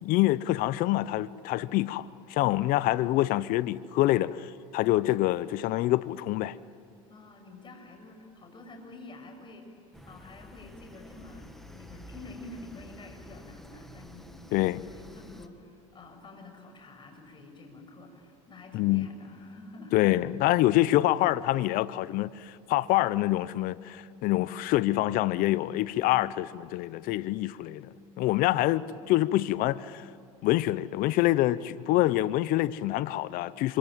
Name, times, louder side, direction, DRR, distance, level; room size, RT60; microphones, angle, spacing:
voice 1, 0.0-6.6 14.5-14.8 18.7-19.1 19.9-27.9 28.2-30.1 30.4-33.8, left 16 dB, 55° left, 0.8 m, -26 dB
voice 2, 7.1-19.9 28.2-29.0, left 2 dB, 30° left, 7.1 m, -48 dB
sound 1, 9.9-15.5, equal, ahead, 1.7 m, -49 dB
26.5 x 24.5 x 9.0 m
supercardioid pair, 95°, 17 cm